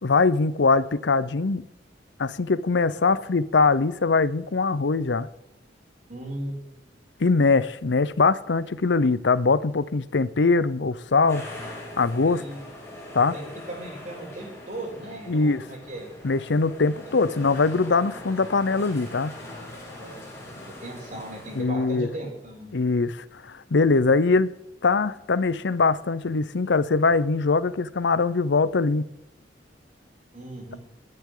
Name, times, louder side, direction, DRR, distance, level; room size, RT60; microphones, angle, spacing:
voice 1, 0.0-1.6 2.2-5.3 7.2-11.4 12.0-12.4 13.1-13.3 15.3-15.6 16.2-19.3 21.6-22.1 22.7-23.2 23.4-24.5 24.8-29.1, left 4 dB, 70° left, 0.7 m, -22 dB
voice 2, 6.1-6.9 12.3-12.6 13.3-16.1 19.4-22.7 30.3-30.8, right 1 dB, 45° right, 7.0 m, -37 dB
sound 1, 11.3-21.6, left 1 dB, 15° left, 6.4 m, -41 dB
27.0 x 10.5 x 3.8 m
head